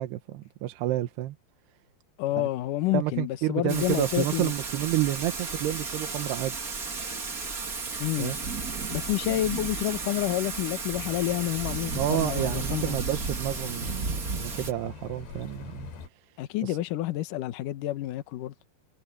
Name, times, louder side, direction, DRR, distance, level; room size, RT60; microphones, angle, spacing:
voice 1, 0.0-1.4 2.4-2.5 2.9-6.6 8.2-8.4 11.9-15.9 16.6-16.8, right 14 dB, 85° right, 3.2 m, -30 dB
voice 2, 2.2-4.5 8.0-8.3 8.9-13.0 16.4-18.5, left 15 dB, 65° left, 2.4 m, -29 dB
Thunder / Rain, 3.7-14.7, right 4 dB, 30° right, 1.8 m, -34 dB
sound 1, 10.9-16.1, left 6 dB, 85° left, 5.5 m, -43 dB
omnidirectional pair, 4.6 m